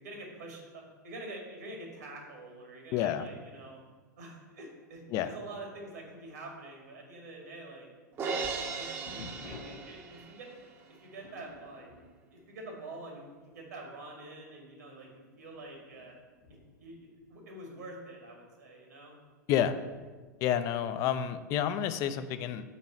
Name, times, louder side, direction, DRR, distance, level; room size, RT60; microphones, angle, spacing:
voice 1, 0.0-3.8 4.2-7.9 8.2-10.5 11.0-11.9 12.3-15.1 15.4-16.1 16.5-19.1, right 2 dB, 60° right, 0 dB, 1.9 m, -46 dB
voice 2, 2.9-3.3 5.1-5.3 19.5-19.8 20.4-22.8, left 10 dB, 35° left, 11 dB, 0.4 m, -29 dB
Crash cymbal, 8.2-10.5, right 4 dB, 25° right, 0.9 m, -36 dB
sound 1, 9.1-13.2 13.5-13.9 14.5-14.6 15.3-18.0 19.9-20.4, left 3 dB, 60° left, 1.6 m, -52 dB
8.2 x 3.1 x 6.2 m, 1.4 s
figure-of-eight pair, 95°, 10 cm